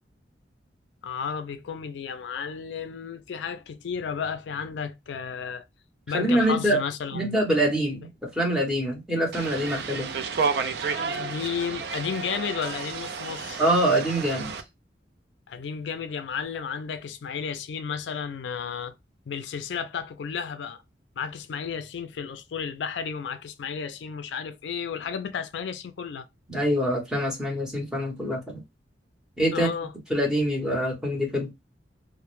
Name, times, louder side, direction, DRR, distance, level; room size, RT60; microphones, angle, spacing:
voice 1, 1.0-5.6 6.1-7.4 9.9-10.0 11.0-13.6 15.5-18.9 19.3-20.8 21.2-26.3 29.5-29.9, left 6 dB, 80° left, 0.4 m, -33 dB
voice 2, 6.1-6.8 7.1-10.1 13.6-14.5 26.5-28.6 29.4-29.7 30.1-31.5, right 1 dB, 5° right, 0.8 m, -25 dB
sound 1, 9.3-14.6, right 5 dB, 65° right, 0.4 m, -31 dB
2.1 x 2.0 x 3.0 m
head